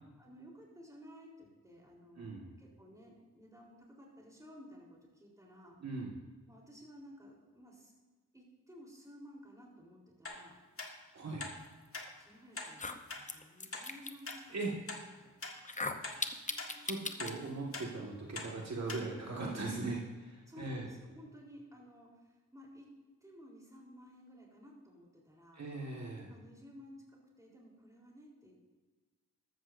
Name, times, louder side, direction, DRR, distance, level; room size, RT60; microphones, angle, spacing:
voice 1, 0.2-5.8 6.5-7.9 8.3-10.6 12.2-15.4 18.8-19.1 19.6-20.0 20.5-22.9 23.2-25.6 26.3-28.5, equal, 10° right, -3 dB, 3.8 m, -55 dB
voice 2, 2.2-2.5 5.8-6.1 11.1-11.5 14.5-14.7 16.8-20.0 20.6-20.8 25.5-26.3, right 3 dB, 60° right, -2 dB, 1.8 m, -39 dB
sound 1, 10.3-10.4 10.8-10.9 11.4-11.6 11.9-12.1 12.6-12.7 13.1-13.2 13.7-13.9 14.3-14.4 14.9-15.0 15.4-15.6 16.0-16.2 16.6-16.7 17.2-17.4 17.7-17.9 18.4-18.5 18.9-19.0 19.5-19.6, left 3 dB, 45° left, 1.8 m, -42 dB
sound 2, 12.1-12.2 12.7-14.3 15.6-17.3, left 3 dB, 25° left, 0.8 m, -39 dB
14.0 x 13.0 x 2.7 m, 1.4 s
wide cardioid pair, 100°, 31 cm